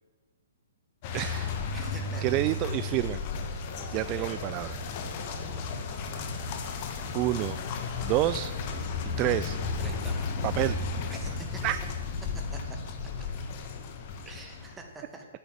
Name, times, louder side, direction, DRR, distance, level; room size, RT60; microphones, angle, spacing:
sound 1, 1.0-14.7, left 4 dB, 40° left, 1.5 m, -34 dB
voice 1, 1.1-1.6 2.2-3.2 3.9-4.7 7.1-7.6 8.0-8.5 9.0-9.6 10.4-10.8 11.6-11.8, right 16 dB, 30° right, 14 dB, 0.3 m, -28 dB
voice 2, 1.7-2.4 2.9-3.0 3.7-4.3 5.4-5.7 9.8-10.3 11.1-11.6 12.5-12.6 13.2-13.3 14.3-15.3, right 2 dB, 10° right, 2 dB, 2.0 m, -46 dB
9.7 x 8.5 x 7.5 m, 1.4 s
figure-of-eight pair, 120°, 0 cm